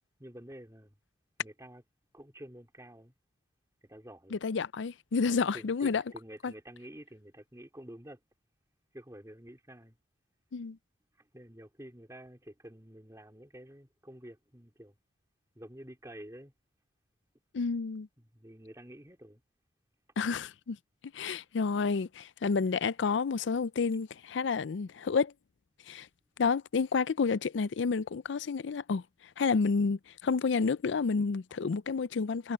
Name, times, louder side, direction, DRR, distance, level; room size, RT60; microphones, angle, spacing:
voice 1, 0.2-0.9 1.4-1.8 2.1-3.1 3.8-4.4 5.2-8.2 8.9-10.0 11.2-14.9 15.6-16.5 18.2-19.4, right 1 dB, 15° right, 3.6 m, -49 dB
voice 2, 4.3-6.0 6.4-6.5 10.5-10.8 17.5-18.1 20.2-20.8 21.1-25.3 25.9-26.1 26.4-29.0 29.4-32.5, left 5 dB, 80° left, 0.5 m, -30 dB
head